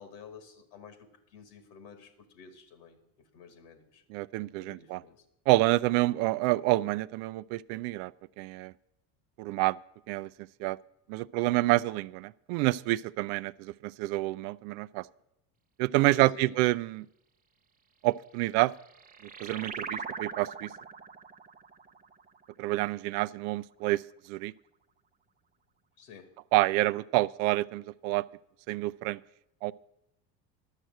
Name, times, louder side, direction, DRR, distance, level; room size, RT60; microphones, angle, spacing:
voice 1, 0.0-4.0 4.6-5.2 16.1-16.6 26.0-26.3, left 5 dB, 75° left, 8 dB, 1.7 m, -51 dB
voice 2, 4.1-5.0 5.5-8.1 8.4-8.7 9.4-9.8 10.1-10.3 10.6-10.8 11.1-15.0 15.8-17.1 18.0-18.7 19.4-20.7 22.6-24.0 24.3-24.5 26.5-28.2 28.7-29.2 29.6-29.7, right 19 dB, 60° right, 18 dB, 0.5 m, -28 dB
sound 1, 18.4-23.5, right 5 dB, 20° right, 0.7 m, -42 dB
11.5 x 6.5 x 7.6 m, 0.86 s
hypercardioid pair, 85°, 48 cm